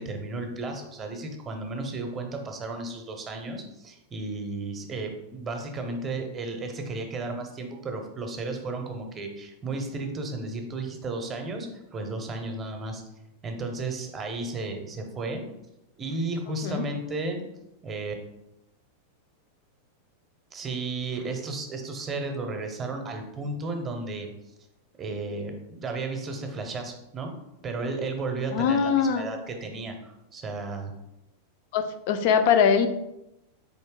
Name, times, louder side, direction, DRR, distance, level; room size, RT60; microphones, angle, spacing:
voice 1, 0.0-13.0 13.4-15.5 16.0-17.4 17.8-18.1 20.5-24.3 25.0-27.3 27.6-30.9, right 3 dB, 25° right, 4 dB, 0.7 m, -33 dB
voice 2, 28.5-29.3 31.7-32.9, left 7 dB, 50° left, 8 dB, 0.4 m, -22 dB
4.1 x 2.7 x 3.6 m, 0.89 s
figure-of-eight pair, 90°, 0 cm